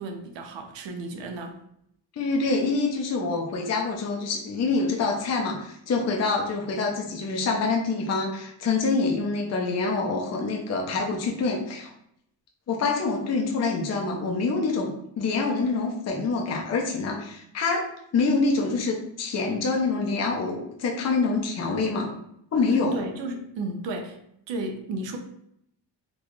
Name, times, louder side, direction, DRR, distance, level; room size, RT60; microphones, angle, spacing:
voice 1, 0.0-1.6 22.9-24.2 24.5-25.2, right 2 dB, 80° right, 5 dB, 0.7 m, -33 dB
voice 2, 2.2-11.9 12.7-17.9 18.1-22.1 22.5-23.0, left 3 dB, 40° left, 1 dB, 0.6 m, -26 dB
4.0 x 2.3 x 3.0 m, 0.73 s
cardioid pair, 135°, 44 cm